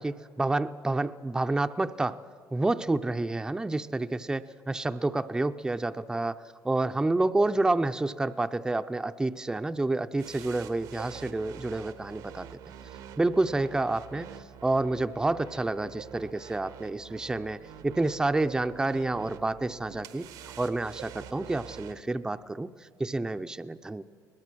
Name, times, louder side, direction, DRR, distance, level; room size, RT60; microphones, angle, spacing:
voice 1, 0.0-2.2 2.5-12.6 13.2-14.3 14.6-20.3 20.6-22.7 23.0-24.0, right 2 dB, 10° right, 9 dB, 0.5 m, -29 dB
sound 1, 10.2-22.0, right 9 dB, 80° right, 1.1 m, -46 dB
22.0 x 19.5 x 6.2 m, 2.1 s
cardioid pair, 110°, 7 cm